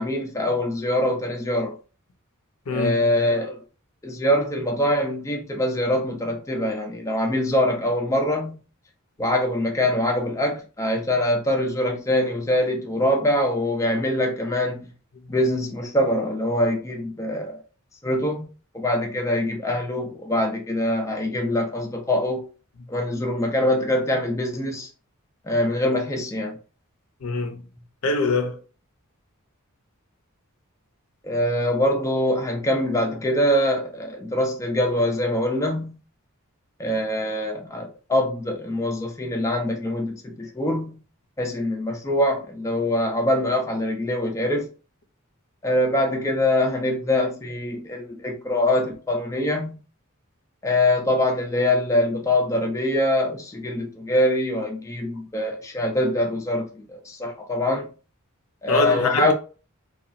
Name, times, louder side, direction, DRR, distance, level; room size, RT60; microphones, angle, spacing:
voice 1, 0.0-1.7 2.7-3.6 4.0-8.6 9.2-14.8 15.3-17.6 18.0-18.5 18.7-22.5 22.9-24.9 25.5-26.5 31.2-36.0 36.8-41.0 41.4-44.7 45.6-49.8 50.6-57.9 58.6-59.3, left 1 dB, 15° left, 0.4 m, -24 dB
voice 2, 2.7-3.0 27.2-27.6 28.0-28.6 58.7-59.3, left 3 dB, 70° left, 0.6 m, -24 dB
2.9 x 2.3 x 2.5 m
head